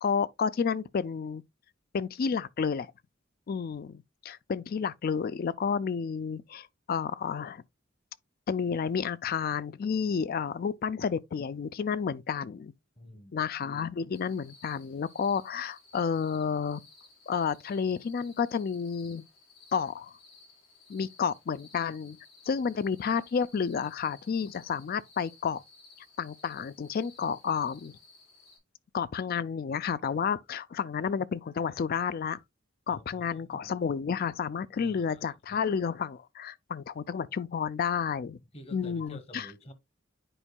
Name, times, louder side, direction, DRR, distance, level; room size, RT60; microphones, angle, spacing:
voice 1, 0.0-1.4 1.9-2.9 3.5-7.6 8.5-12.7 13.3-16.8 17.3-19.2 19.7-20.1 20.9-22.2 22.5-25.6 26.2-28.0 28.9-32.4 32.9-38.4 38.7-39.5, left 6 dB, 50° left, 0.4 m, -31 dB
voice 2, 13.0-13.5 32.9-33.7 34.8-35.7 38.5-39.7, left 1 dB, 30° left, 1.0 m, -50 dB
sound 1, 14.1-28.6, left 3 dB, 90° left, 4.9 m, -57 dB
10.0 x 4.4 x 2.2 m
head